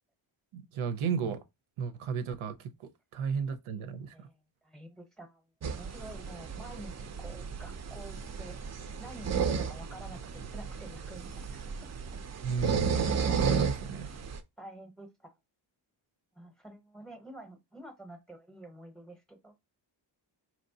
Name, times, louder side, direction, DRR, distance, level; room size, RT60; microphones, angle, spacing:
voice 1, 0.5-1.4 1.8-4.3 12.4-13.0 13.4-14.1, right 6 dB, 90° right, 0.7 m, -34 dB
voice 2, 4.6-5.4 5.8-8.6 9.0-11.9 14.6-15.3 16.4-19.5, right 1 dB, ahead, 0.7 m, -49 dB
sound 1, 5.6-14.4, right 6 dB, 35° right, 0.4 m, -33 dB
4.2 x 3.1 x 2.7 m
wide cardioid pair, 125°, 47 cm